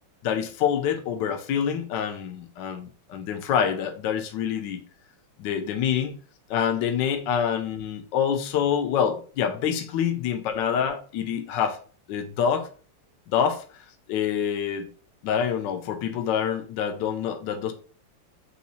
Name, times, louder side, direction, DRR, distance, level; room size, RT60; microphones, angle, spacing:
voice 1, 0.2-4.8 5.4-6.2 6.5-11.8 12.1-12.7 13.3-13.6 14.1-14.9 15.2-17.7, left 8 dB, 70° left, 1.2 m, -26 dB
4.2 x 2.7 x 4.0 m
omnidirectional pair, 2.2 m